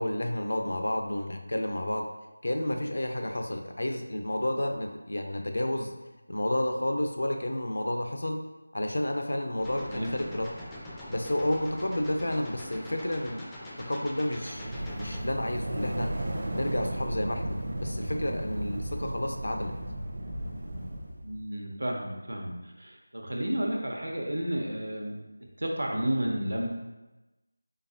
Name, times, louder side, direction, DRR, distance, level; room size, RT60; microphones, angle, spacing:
voice 1, 0.0-2.1 2.4-5.9 6.3-8.4 8.7-10.5 11.1-13.5 13.8-19.7, left 1 dB, 75° left, 4 dB, 0.5 m, -31 dB
sound 1, 9.6-15.2, left 1 dB, 5° left, 0.3 m, -43 dB
sound 2, 14.4-21.4, right 1 dB, 45° right, 0.6 m, -35 dB
voice 2, 21.2-25.2 25.6-26.7, right 1 dB, 85° right, 0 dB, 0.8 m, -31 dB
3.8 x 3.5 x 2.8 m, 1.1 s
figure-of-eight pair, 170°, 0 cm